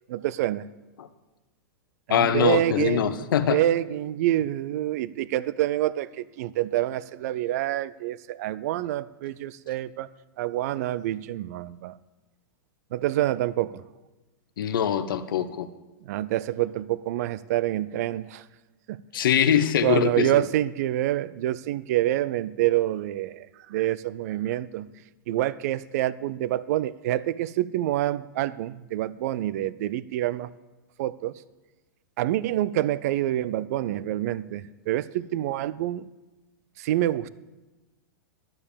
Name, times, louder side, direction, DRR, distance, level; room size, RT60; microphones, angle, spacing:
voice 1, 0.1-0.7 2.1-3.2 3.5-10.1 10.4-12.0 12.9-13.8 16.1-18.4 18.9-19.0 19.8-24.9 25.3-30.5 31.0-31.4 32.2-36.1 36.8-37.3, right 14 dB, 50° right, 19 dB, 0.4 m, -27 dB
voice 2, 2.1-3.6 14.6-15.7 19.1-20.5, left 9 dB, 85° left, 10 dB, 0.8 m, -23 dB
12.0 x 7.4 x 6.9 m, 1.1 s
supercardioid pair, 165°, 11 cm